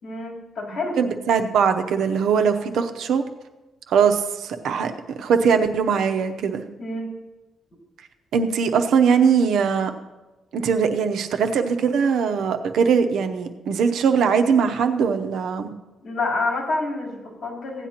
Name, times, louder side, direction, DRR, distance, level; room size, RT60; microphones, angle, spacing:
voice 1, 0.0-1.0 6.8-7.1 16.0-17.9, left 2 dB, 65° left, -3 dB, 3.5 m, -28 dB
voice 2, 1.0-3.2 3.9-4.9 5.2-6.6 8.3-9.9 10.5-15.7, right 6 dB, 85° right, 6 dB, 0.7 m, -21 dB
16.5 x 9.9 x 2.9 m, 1.1 s
cardioid pair, 110°, 0 cm